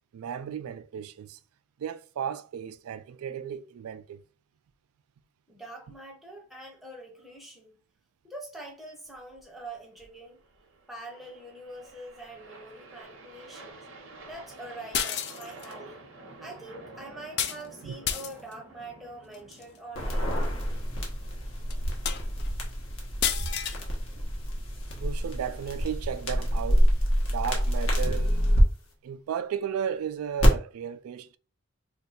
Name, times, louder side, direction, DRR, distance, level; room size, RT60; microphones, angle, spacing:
voice 1, 0.1-1.4 1.8-4.2 17.8-18.0 24.9-26.9 27.3-28.4 29.0-31.4, right 8 dB, 85° right, 0.3 m, -34 dB
voice 2, 5.5-7.8 8.2-10.4 10.9-13.9 14.2-16.0 16.4-20.4, right 2 dB, ahead, 0.7 m, -44 dB
sound 1, 9.1-22.4, right 2 dB, 65° right, 0.7 m, -50 dB
sound 2, 14.9-15.7 17.4-17.6 18.0-18.5 19.3-19.6 20.4-20.5 21.0-21.1 21.7-21.8 22.1-22.5 23.2-23.8, left 9 dB, 50° left, 0.3 m, -30 dB
sound 3, 19.9-28.6 30.4-30.5, equal, 70° left, 1.0 m, -27 dB
2.6 x 2.3 x 4.0 m
head